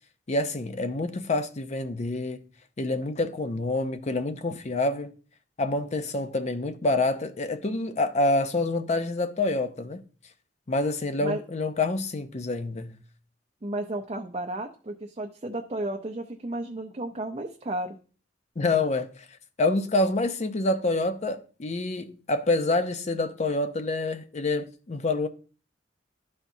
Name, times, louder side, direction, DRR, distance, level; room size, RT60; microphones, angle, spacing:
voice 1, 0.3-2.5 2.8-5.1 5.6-10.0 10.7-13.0 18.6-19.3 19.6-25.3, left 2 dB, 40° left, 0.6 m, -27 dB
voice 2, 13.6-18.0, right 1 dB, 35° right, 0.6 m, -33 dB
12.5 x 4.4 x 2.7 m
head